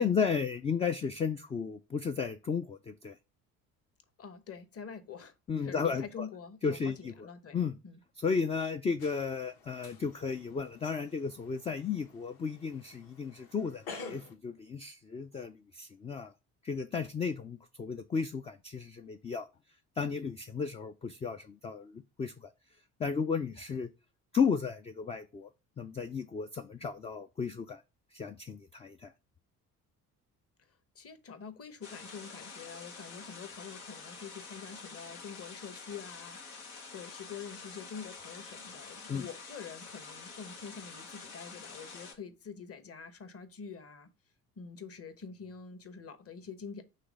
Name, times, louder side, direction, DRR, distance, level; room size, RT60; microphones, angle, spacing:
voice 1, 0.0-3.1 5.5-6.3 6.6-7.1 7.5-7.8 8.2-16.3 16.6-19.5 20.0-22.5 23.0-23.9 24.3-25.5 25.8-27.8 28.1-29.1 39.1-39.3, left 5 dB, 15° left, 0.3 m, -34 dB
voice 2, 4.2-7.6 7.8-8.0 30.9-36.4 36.9-44.1 44.6-46.8, left 6 dB, 30° left, 1.0 m, -46 dB
sound 1, 9.0-14.4, left 4 dB, 55° left, 1.5 m, -50 dB
sound 2, 31.8-42.1, left 4 dB, 80° left, 1.3 m, -48 dB
5.7 x 3.3 x 5.0 m
figure-of-eight pair, 55°, 44 cm